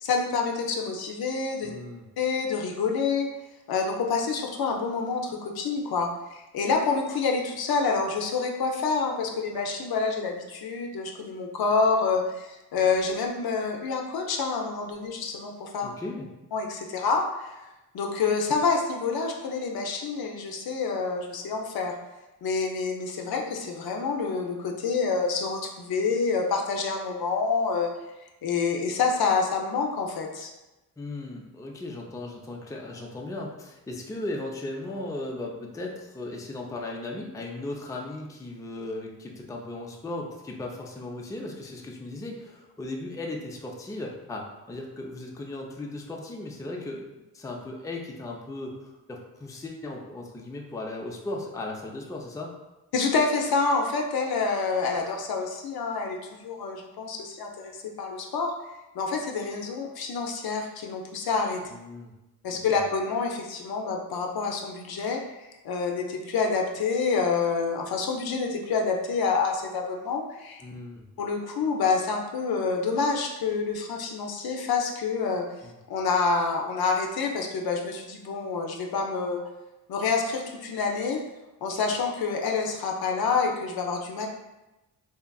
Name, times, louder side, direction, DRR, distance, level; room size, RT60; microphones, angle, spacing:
voice 1, 0.0-1.7 2.2-3.3 3.7-15.9 16.5-17.6 17.9-21.9 22.4-27.9 28.4-30.5 52.9-58.5 58.9-61.7 62.4-70.6 71.2-75.4 75.9-79.4 79.9-81.2 81.6-84.3, left 4 dB, 60° left, 2 dB, 0.5 m, -27 dB
voice 2, 1.6-2.0 15.8-16.3 31.0-52.5 61.7-62.1 62.5-62.8 70.6-71.1 75.6-75.8, left 2 dB, 10° left, 0 dB, 0.4 m, -37 dB
2.8 x 2.3 x 2.2 m, 1.0 s
supercardioid pair, 50°, 42 cm